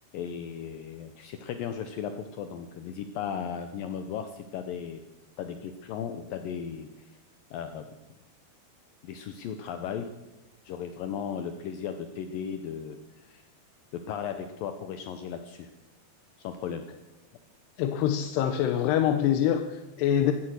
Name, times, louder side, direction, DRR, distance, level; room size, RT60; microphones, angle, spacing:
voice 1, 0.1-5.0 5.4-7.0 7.5-7.9 9.0-10.1 10.7-13.4 13.9-15.7 16.4-16.8, left 8 dB, 75° left, 8 dB, 2.2 m, -36 dB
voice 2, 17.8-20.3, left 10 dB, 90° left, 9 dB, 2.9 m, -25 dB
16.0 x 12.5 x 6.4 m, 1.0 s
omnidirectional pair, 4.6 m